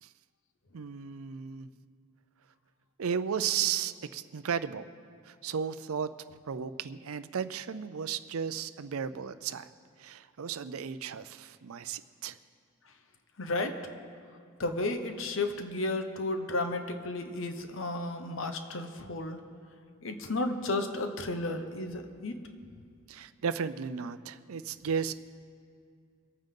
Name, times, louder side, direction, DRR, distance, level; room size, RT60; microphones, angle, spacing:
voice 1, 0.7-1.7 3.0-4.9 5.2-6.1 6.5-9.7 10.0-12.4 23.1-25.1, right 7 dB, 75° right, 13 dB, 0.5 m, -34 dB
voice 2, 13.4-13.8 14.6-19.4 20.0-22.4, left 2 dB, 60° left, 7 dB, 1.0 m, -33 dB
23.5 x 9.0 x 3.8 m, 2.3 s
head